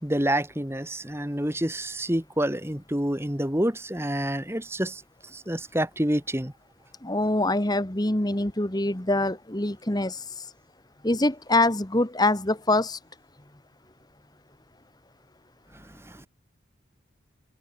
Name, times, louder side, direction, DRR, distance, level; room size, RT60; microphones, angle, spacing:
voice 1, 0.0-6.5 15.7-16.3, right 1 dB, 10° right, 2.5 m, -28 dB
voice 2, 7.0-10.4 11.0-13.0, left 2 dB, 20° left, 1.5 m, -24 dB
head